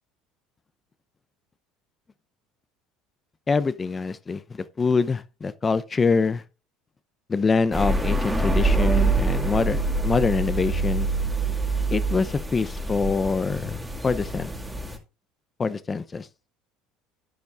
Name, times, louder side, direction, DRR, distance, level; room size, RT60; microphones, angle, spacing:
voice 1, 3.5-6.4 7.3-11.1 11.9-13.8 14.0-14.5 15.6-16.2, left 4 dB, 25° left, 0.6 m, -25 dB
sound 1, 7.7-15.0, right 3 dB, 5° right, 2.0 m, -25 dB
11.5 x 9.6 x 2.5 m
supercardioid pair, 85°, 0 cm